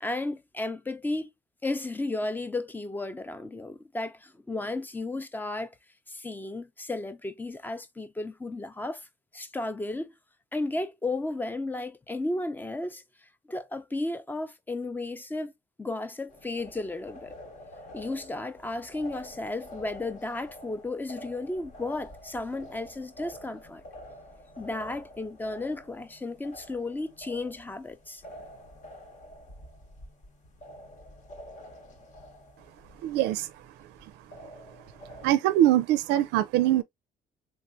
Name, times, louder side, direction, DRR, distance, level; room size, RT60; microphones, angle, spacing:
voice 1, 0.0-1.3 1.6-5.7 6.1-9.1 9.3-10.1 10.5-13.0 13.5-15.5 15.8-17.4 17.9-23.8 24.6-28.2, left 2 dB, 10° left, 0.5 m, -34 dB
sound 1, 16.3-35.3, equal, 45° left, 1.1 m, -48 dB
voice 2, 33.0-33.5 35.2-36.8, right 13 dB, 85° right, 0.4 m, -23 dB
3.3 x 3.3 x 2.5 m
cardioid pair, 110°, 17 cm